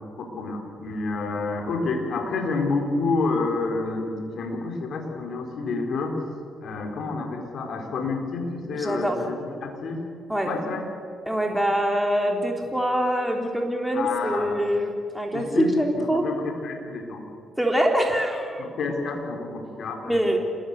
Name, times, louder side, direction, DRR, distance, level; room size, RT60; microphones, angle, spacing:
voice 1, 0.2-6.2 6.6-10.0 10.4-10.8 13.9-14.6 15.3-15.7 15.9-17.2 18.6-20.4, left 3 dB, 60° left, 3 dB, 4.4 m, -29 dB
voice 2, 8.7-9.2 10.3-10.5 11.3-16.3 17.6-18.6 20.0-20.4, equal, 5° right, 1 dB, 3.9 m, -24 dB
28.0 x 21.0 x 6.9 m, 2.5 s
hypercardioid pair, 45°, 0 cm